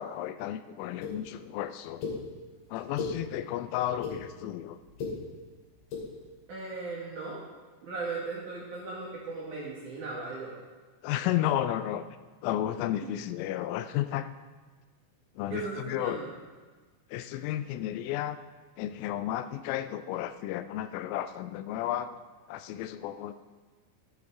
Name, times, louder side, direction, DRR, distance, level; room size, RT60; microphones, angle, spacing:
voice 1, 0.0-2.2 2.7-4.8 11.0-12.0 12.4-14.3 15.4-16.2 17.1-18.4 18.8-22.2 22.5-23.3, left 12 dB, 85° left, 12 dB, 3.1 m, -33 dB
sound 1, 1.0-1.1 2.0-2.1 2.8-3.1 3.8-4.2 4.8-5.1 5.8-6.0, left 5 dB, 60° left, 5.2 m, -34 dB
voice 2, 6.5-7.4 7.8-10.5 13.0-13.1 15.5-16.3, right 3 dB, 60° right, -5 dB, 2.3 m, -37 dB
13.5 x 12.0 x 3.6 m, 1.4 s
omnidirectional pair, 5.8 m